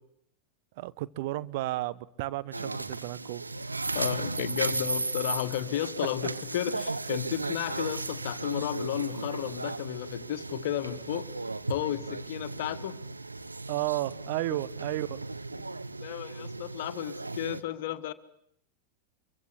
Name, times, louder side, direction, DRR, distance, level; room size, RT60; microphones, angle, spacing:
voice 1, 0.8-3.4 13.7-15.2, right 17 dB, 50° right, 1.0 m, -33 dB
sound 1, 2.5-17.6, right 3 dB, 80° right, 1.1 m, -35 dB
voice 2, 3.9-11.3 11.7-12.9 16.0-18.1, left 13 dB, 55° left, 1.6 m, -33 dB
26.0 x 24.0 x 8.3 m
figure-of-eight pair, 90°, 0 cm